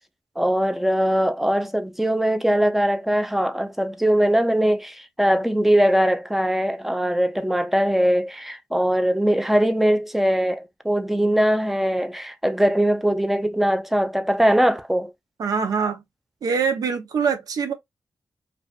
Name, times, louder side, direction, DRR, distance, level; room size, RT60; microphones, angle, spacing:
voice 1, 0.4-15.1, equal, 5° right, 0.5 m, -21 dB
voice 2, 15.4-16.0 16.4-17.7, right 5 dB, 80° right, 0.6 m, -23 dB
2.4 x 2.4 x 2.3 m
cardioid pair, 55°, 6 cm